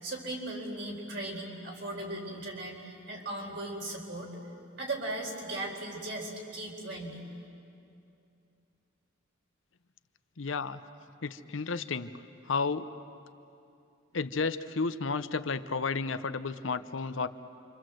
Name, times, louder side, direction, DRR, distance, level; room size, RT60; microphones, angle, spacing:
voice 1, 0.0-4.3 4.8-7.3, right 2 dB, 55° right, 0 dB, 4.5 m, -37 dB
voice 2, 10.4-10.8 11.2-12.1 12.5-12.9 14.1-17.3, left 4 dB, 70° left, 11 dB, 0.8 m, -32 dB
28.0 x 25.5 x 7.8 m, 2.6 s
head